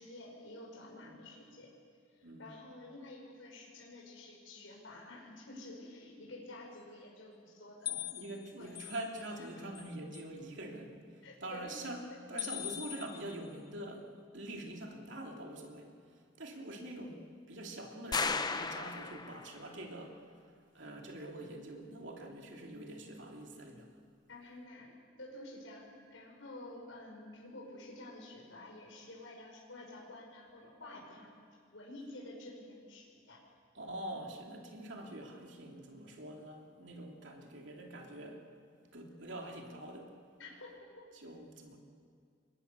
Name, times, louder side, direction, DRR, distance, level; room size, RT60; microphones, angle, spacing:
voice 1, 0.0-1.7 2.1-7.9 8.6-8.8 11.2-11.8 24.3-31.3 31.7-33.4 40.4-40.7, left 2 dB, 75° left, -2 dB, 5.6 m, -50 dB
voice 2, 2.2-2.5 7.8-12.0 12.3-20.2 20.7-23.9 33.7-38.5 38.9-40.1 41.1-41.8, right 1 dB, 65° right, 1 dB, 3.1 m, -45 dB
sound 1, 7.9-9.4 9.8-10.2 12.4-13.6, left 12 dB, 55° left, 0.9 m, -42 dB
sound 2, 18.1-19.6, left 4 dB, 20° left, 0.7 m, -35 dB
28.0 x 22.5 x 7.0 m, 2.3 s
head